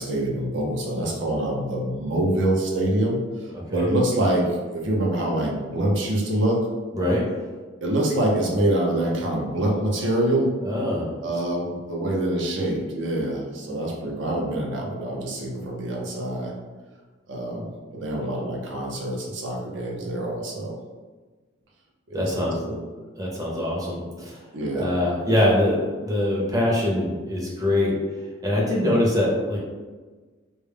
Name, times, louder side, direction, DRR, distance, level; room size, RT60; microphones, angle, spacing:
voice 1, 0.0-6.6 7.8-10.5 11.2-16.5 17.3-20.8 22.1-22.8 24.5-24.9, right 1 dB, 75° right, -2 dB, 0.6 m, -25 dB
voice 2, 3.5-3.9 6.9-7.2 10.6-11.1 22.1-22.6 23.1-24.4 24.7-27.9 28.4-29.6, left 1 dB, 20° right, -4 dB, 0.5 m, -23 dB
2.2 x 2.0 x 3.2 m, 1.3 s
head